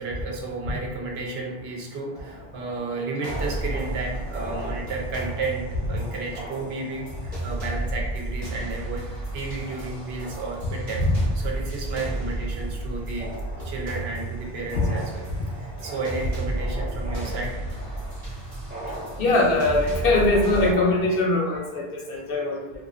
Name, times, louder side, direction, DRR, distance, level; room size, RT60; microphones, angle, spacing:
voice 1, 0.0-9.1 9.3-11.0 11.3-13.3 13.6-15.3 15.5-17.6 22.1-22.2, right 3 dB, 80° right, -1 dB, 0.8 m, -32 dB
sound 1, 2.1-21.6, right 1 dB, 15° right, 0.3 m, -41 dB
sound 2, 3.2-20.7, right 2 dB, 40° right, 0.9 m, -33 dB
voice 2, 19.2-22.7, left 2 dB, 70° left, -1 dB, 0.7 m, -22 dB
2.4 x 2.4 x 2.4 m, 0.98 s
omnidirectional pair, 1.0 m